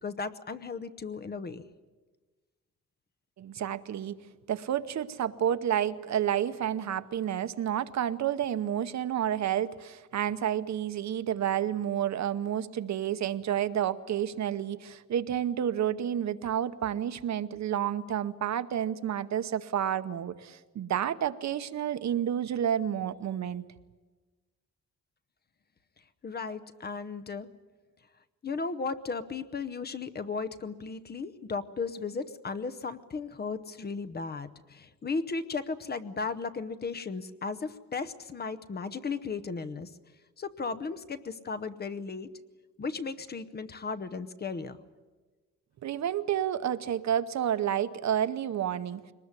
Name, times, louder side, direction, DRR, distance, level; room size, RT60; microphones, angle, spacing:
voice 1, 0.0-1.6 26.2-27.5 28.4-39.9 40.4-42.3 42.8-44.8, left 4 dB, 35° left, 12 dB, 0.8 m, -35 dB
voice 2, 3.4-4.2 4.5-23.6 45.8-49.0, right 10 dB, 70° right, 13 dB, 0.9 m, -30 dB
22.5 x 20.0 x 9.7 m, 1.3 s
wide cardioid pair, 175°, 29 cm